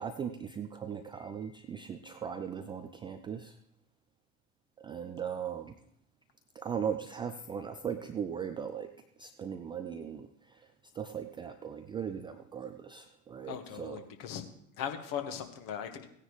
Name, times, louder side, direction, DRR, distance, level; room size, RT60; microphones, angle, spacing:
voice 1, 0.0-3.6 4.8-5.8 6.5-8.9 9.2-14.0, right 7 dB, 10° right, 8 dB, 0.3 m, -38 dB
voice 2, 13.5-14.5 14.8-16.1, left 8 dB, 45° left, 6 dB, 1.8 m, -38 dB
17.0 x 9.7 x 3.3 m, 0.75 s
figure-of-eight pair, 70°, 46 cm